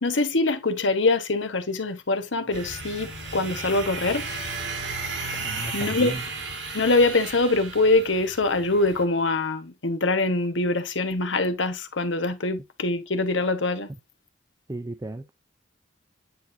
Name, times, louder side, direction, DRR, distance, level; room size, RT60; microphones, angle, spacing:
voice 1, 0.0-4.3 5.7-6.1 6.7-13.9, left 2 dB, 85° left, 1.2 m, -24 dB
sound 1, 2.5-9.0, right 3 dB, 80° right, 2.9 m, -34 dB
voice 2, 5.4-6.2 14.7-15.3, right 2 dB, 20° right, 0.4 m, -35 dB
9.4 x 4.4 x 2.6 m
head